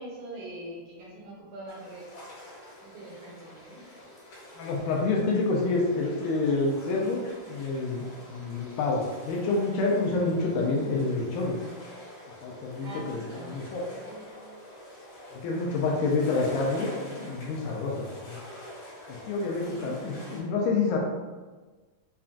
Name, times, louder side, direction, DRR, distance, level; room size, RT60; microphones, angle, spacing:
voice 1, 0.0-2.1 2.8-3.8 12.8-14.3 19.6-20.0, right 1 dB, 75° right, -5 dB, 1.9 m, -43 dB
sound 1, 1.7-20.4, left 1 dB, 60° left, 2.3 m, -46 dB
voice 2, 4.6-11.6 12.4-13.8 15.3-18.4 19.1-21.0, left 3 dB, 80° left, -2 dB, 1.9 m, -28 dB
5.6 x 2.3 x 2.5 m, 1.3 s
omnidirectional pair, 3.9 m